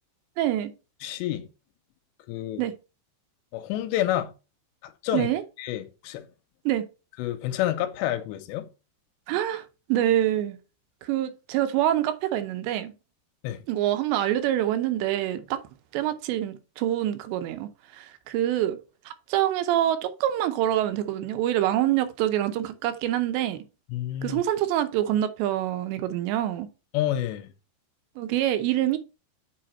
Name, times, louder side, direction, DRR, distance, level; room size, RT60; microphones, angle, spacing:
voice 1, 0.4-0.7 2.6-2.7 5.1-5.4 6.7-6.9 9.3-9.6 9.9-10.6 11.0-12.9 13.7-15.6 15.9-18.8 19.1-23.6 24.2-26.7 28.2-29.0, right 12 dB, 80° right, 2.9 m, -26 dB
voice 2, 1.0-1.5 2.3-2.6 3.5-4.3 4.8-5.3 5.6-6.3 7.2-8.7 13.4-13.6 23.9-24.4 26.9-27.5, left 12 dB, 85° left, 2.9 m, -29 dB
7.7 x 4.6 x 4.3 m
omnidirectional pair, 5.1 m